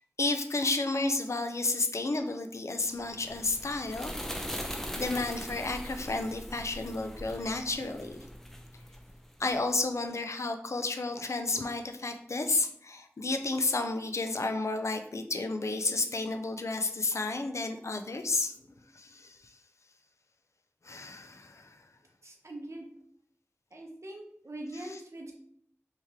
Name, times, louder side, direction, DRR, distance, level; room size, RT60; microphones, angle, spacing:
voice 1, 0.2-4.3 4.6-8.2 9.4-18.5 18.9-19.5 20.8-21.8, left 3 dB, 85° left, 7 dB, 0.4 m, -32 dB
sound 1, 3.0-9.6, equal, 10° left, 0.5 m, -41 dB
voice 2, 22.2-22.9 23.7-25.3, right 1 dB, 75° right, 1 dB, 0.7 m, -42 dB
3.1 x 2.8 x 3.6 m, 0.65 s
wide cardioid pair, 55°, 5 cm